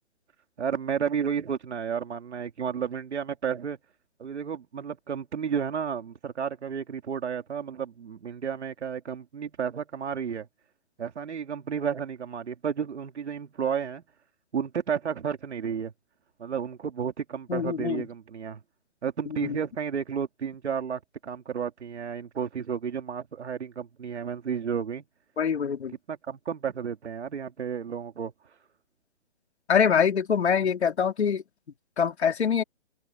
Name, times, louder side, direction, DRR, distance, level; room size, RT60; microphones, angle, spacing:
voice 1, 0.6-3.8 4.2-10.5 11.0-14.0 14.5-15.9 16.4-18.6 19.0-25.0 26.1-28.3, right 7 dB, 65° right, 2.9 m, -32 dB
voice 2, 17.5-18.0 19.3-19.6 25.4-25.9 29.7-31.4 32.0-32.6, left 7 dB, 60° left, 4.2 m, -24 dB
hypercardioid pair, 170°, 37 cm